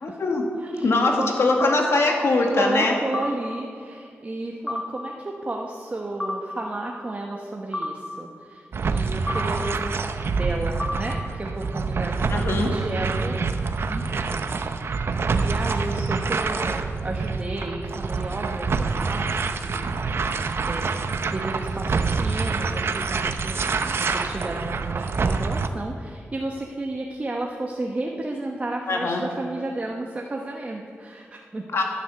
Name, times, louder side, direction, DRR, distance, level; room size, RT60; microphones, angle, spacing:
voice 1, 0.0-0.5 0.8-3.0 12.3-12.7 28.9-29.2 31.7-31.8, left 2 dB, 65° left, 1 dB, 1.9 m, -22 dB
voice 2, 0.6-1.7 2.4-13.4 13.8-15.0 15.3-20.3 20.6-20.9 21.2-31.7, right 2 dB, 30° right, 0 dB, 1.1 m, -33 dB
sound 1, 1.6-1.8 3.1-3.3 4.7-4.9 6.2-6.4 7.7-7.9 9.3-9.5 10.8-11.0, left 1 dB, 10° left, 1.5 m, -28 dB
sound 2, 8.7-25.7, right 4 dB, 60° right, 0.8 m, -26 dB
15.0 x 9.9 x 7.0 m, 2.3 s
wide cardioid pair, 125°, 5 cm